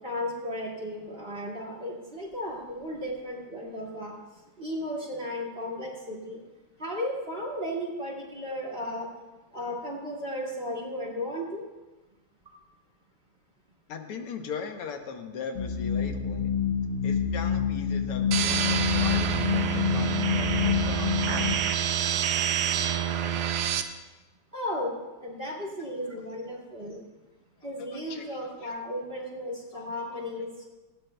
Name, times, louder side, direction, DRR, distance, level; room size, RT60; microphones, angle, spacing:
voice 1, 0.0-4.1 4.6-6.4 6.8-9.1 9.5-11.7 12.5-12.6 24.5-27.0 27.6-30.6, left 1 dB, 25° right, -2 dB, 2.4 m, -35 dB
voice 2, 13.9-16.5 17.0-21.7 25.5-25.6 27.9-28.8 29.7-29.9, left 6 dB, 85° left, 5 dB, 1.9 m, -39 dB
sound 1, 15.6-21.5, left 7 dB, 65° left, 0.6 m, -27 dB
sound 2, 18.3-23.8, right 9 dB, 85° right, 1.7 m, -27 dB
18.5 x 16.0 x 2.3 m, 1.1 s
omnidirectional pair, 2.4 m